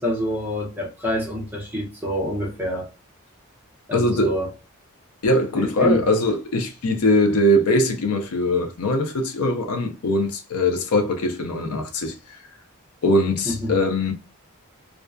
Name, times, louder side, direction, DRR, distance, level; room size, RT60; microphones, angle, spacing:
voice 1, 0.0-2.9 3.9-4.5 5.5-6.0 13.5-13.8, equal, 10° right, 0.7 m, -26 dB
voice 2, 3.9-4.3 5.2-12.4 13.0-14.1, left 1 dB, 80° left, 0.5 m, -21 dB
2.4 x 2.2 x 2.4 m
head